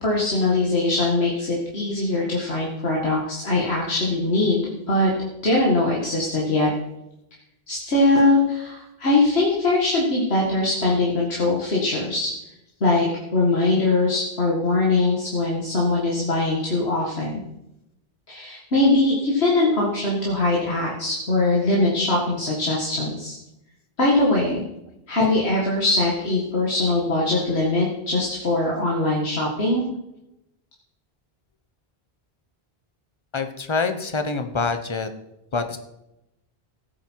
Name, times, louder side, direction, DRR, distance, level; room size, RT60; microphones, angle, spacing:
voice 1, 0.0-5.1 5.4-6.7 7.7-12.3 12.8-13.1 13.3-17.3 18.3-23.3 24.0-24.6 25.1-29.8, left 2 dB, 80° left, -3 dB, 2.2 m, -21 dB
voice 2, 33.3-35.1 35.5-35.8, left 4 dB, 30° left, 8 dB, 1.0 m, -25 dB
15.5 x 8.9 x 4.7 m, 0.88 s
omnidirectional pair, 1.1 m